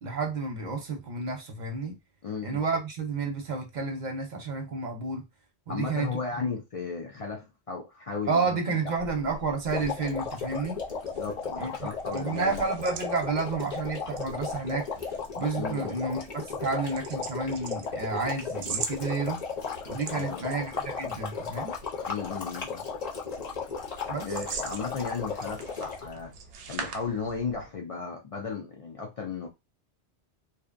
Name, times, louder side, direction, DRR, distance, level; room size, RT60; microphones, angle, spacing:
voice 1, 0.0-2.0 2.4-5.3 5.7-6.5 8.3-10.8 11.6-14.9 15.4-19.4 19.9-21.7 24.1-24.3, right 4 dB, 50° right, 0.6 m, -31 dB
voice 2, 2.2-2.6 5.7-8.6 11.0-12.6 15.6-15.9 20.1-20.5 22.1-22.8 24.2-26.3 26.7-29.5, left 5 dB, 65° left, 0.3 m, -35 dB
sound 1, 8.9-27.7, right 5 dB, 85° right, 0.9 m, -43 dB
sound 2, 9.7-26.1, left 5 dB, 45° left, 0.7 m, -35 dB
2.6 x 2.1 x 2.4 m
omnidirectional pair, 1.2 m